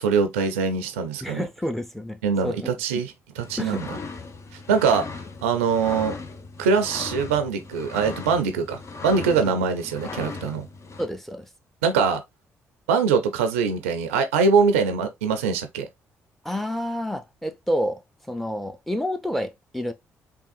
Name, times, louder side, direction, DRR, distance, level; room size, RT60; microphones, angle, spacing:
voice 1, 0.0-1.4 2.2-3.9 4.7-5.1 5.4-6.2 6.6-10.7 11.8-12.2 12.9-15.9, right 5 dB, 90° right, 0.4 m, -23 dB
voice 2, 1.2-2.7 3.6-4.1 9.4-9.5 11.0-11.5 16.4-18.0 18.3-19.9, equal, ahead, 0.7 m, -29 dB
sound 1, 3.4-11.1, left 3 dB, 45° left, 0.6 m, -38 dB
3.6 x 2.3 x 2.5 m
hypercardioid pair, 45°, 7 cm